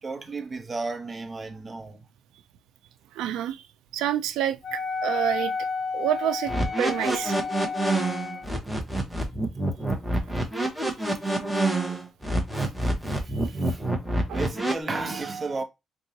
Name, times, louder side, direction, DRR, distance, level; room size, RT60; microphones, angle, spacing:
voice 1, 0.0-2.1 11.7-12.1 12.6-12.7 13.0-13.9 14.3-15.6, right 3 dB, 30° right, 1.0 m, -34 dB
voice 2, 3.2-3.6 3.9-5.5 5.9-6.5 6.8-7.4 14.3-14.4, right 11 dB, 90° right, 0.4 m, -28 dB
Wind instrument woodwind instrument, 4.6-8.6, left 4 dB, 45° left, 0.6 m, -31 dB
sound 1, 6.5-14.7, right 2 dB, ahead, 1.1 m, -26 dB
4.6 x 2.4 x 2.8 m
cardioid pair, 90°, 0 cm